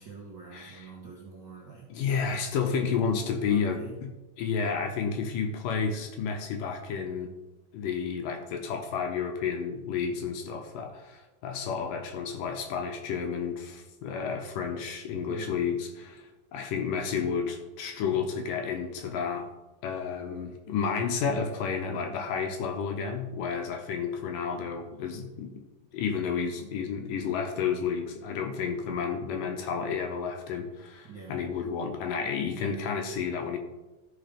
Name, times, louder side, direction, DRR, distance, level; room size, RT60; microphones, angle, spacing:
voice 1, 0.0-2.5 3.5-3.9 15.3-15.6 31.1-31.4, right 5 dB, 50° right, -5 dB, 1.3 m, -45 dB
voice 2, 0.5-0.9 1.9-4.1 4.4-7.3 7.7-19.5 19.8-25.6 25.9-33.6, left 6 dB, 75° left, 4 dB, 2.3 m, -31 dB
13.5 x 5.0 x 5.1 m, 1.1 s
omnidirectional pair, 4.4 m